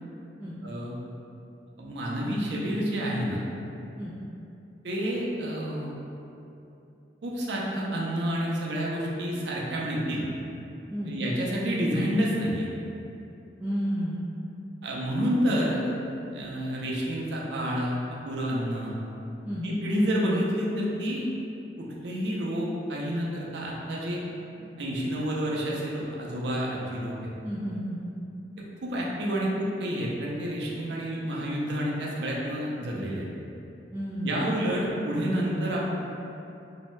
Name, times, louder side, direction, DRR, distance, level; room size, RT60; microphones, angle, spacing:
voice 1, 0.6-1.0 1.8-3.4 4.8-5.9 7.2-10.2 11.1-12.7 14.8-18.0 18.2-18.9 19.6-21.3 21.8-24.2 24.8-27.3 28.6-33.2 34.2-35.9, equal, 75° right, -4 dB, 0.5 m, -29 dB
voice 2, 13.6-14.2 19.4-19.8 27.4-28.0 33.9-34.4, equal, 10° right, -11 dB, 0.3 m, -32 dB
2.6 x 2.1 x 3.0 m, 2.8 s
head